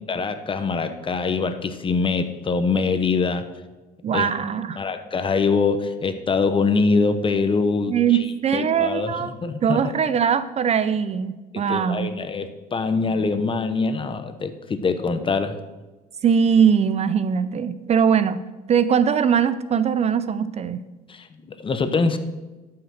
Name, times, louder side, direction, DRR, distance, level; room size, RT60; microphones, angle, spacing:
voice 1, 0.1-3.4 4.1-4.3 4.8-8.2 8.5-9.8 11.5-15.6 21.1-22.2, left 4 dB, 30° left, 10 dB, 1.0 m, -24 dB
voice 2, 4.0-4.8 7.9-9.3 9.6-12.1 16.2-18.4 18.7-20.8, right 7 dB, 40° right, 14 dB, 0.5 m, -21 dB
12.0 x 5.8 x 6.6 m, 1.2 s
cardioid pair, 110°, 17 cm